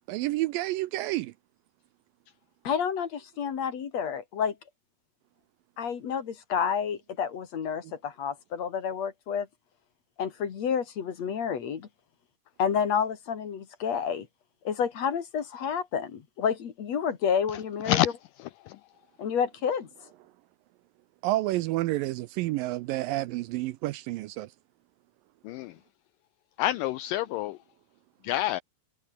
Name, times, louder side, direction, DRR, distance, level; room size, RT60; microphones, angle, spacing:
voice 1, 0.1-1.3 21.2-24.5, right 17 dB, 80° right, 2.2 m, -29 dB
voice 2, 2.6-4.5 5.8-9.5 10.2-11.9 12.6-14.3 14.6-18.0 19.2-19.9, left 7 dB, 50° left, 2.9 m, -29 dB
voice 3, 26.6-27.6 28.2-28.6, left 14 dB, 80° left, 2.0 m, -27 dB
omnidirectional pair, 4.4 m